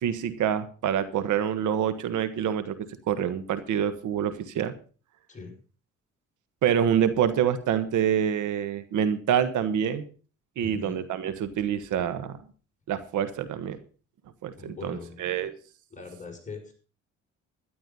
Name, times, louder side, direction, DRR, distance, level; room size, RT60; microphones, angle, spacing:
voice 1, 0.0-2.8 3.1-4.7 6.6-10.0 10.6-12.4 12.9-13.8 14.4-15.5, right 9 dB, 80° right, 12 dB, 1.5 m, -26 dB
voice 2, 10.6-11.0 14.6-15.3 15.9-16.7, left 4 dB, 25° left, 1 dB, 6.0 m, -41 dB
12.5 x 11.0 x 5.5 m, 0.38 s
cardioid pair, 90°, 30 cm